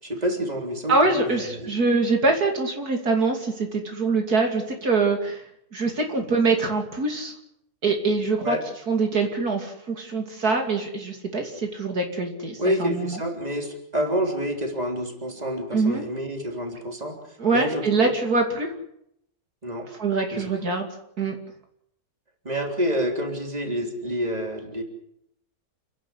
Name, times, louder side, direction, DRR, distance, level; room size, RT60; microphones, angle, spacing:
voice 1, 0.0-1.7 8.4-8.6 12.6-18.1 19.6-19.9 20.3-20.5 22.4-24.8, equal, 25° right, 3 dB, 3.7 m, -28 dB
voice 2, 0.9-5.4 5.7-7.3 7.8-8.6 8.9-13.2 15.7-16.0 17.4-18.7 20.0-20.9 21.2-21.4, right 3 dB, 70° right, 3 dB, 3.2 m, -24 dB
29.5 x 11.5 x 9.8 m, 0.75 s
omnidirectional pair, 1.7 m